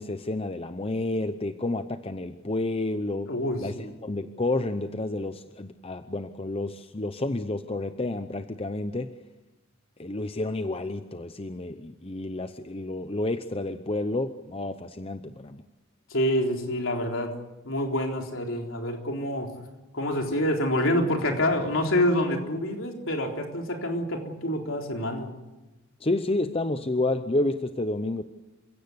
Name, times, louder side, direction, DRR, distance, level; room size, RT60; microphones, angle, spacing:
voice 1, 0.0-3.3 3.6-3.7 4.0-9.1 10.0-15.6 26.0-28.2, left 2 dB, 25° left, 9 dB, 0.8 m, -30 dB
voice 2, 3.3-3.9 16.1-17.3 17.6-19.5 19.9-25.3, left 1 dB, 65° left, 2 dB, 4.0 m, -27 dB
29.0 x 16.5 x 8.1 m, 1.1 s
head